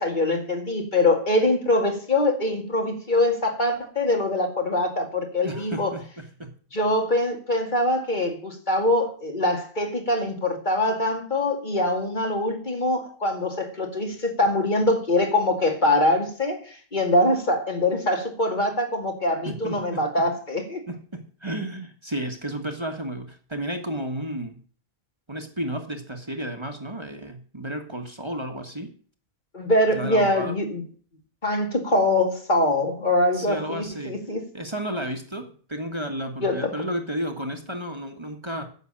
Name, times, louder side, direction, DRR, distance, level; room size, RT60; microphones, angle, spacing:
voice 1, 0.0-5.9 6.7-16.6 16.9-20.8 29.5-30.8 31.4-34.4 36.4-36.8, left 1 dB, 50° left, 2.4 m, -23 dB
voice 2, 5.4-6.5 19.4-20.3 20.9-24.6 25.3-28.9 29.9-30.6 33.3-34.2 34.5-38.7, right 1 dB, 25° right, 1.6 m, -32 dB
9.8 x 7.4 x 8.8 m
omnidirectional pair, 1.0 m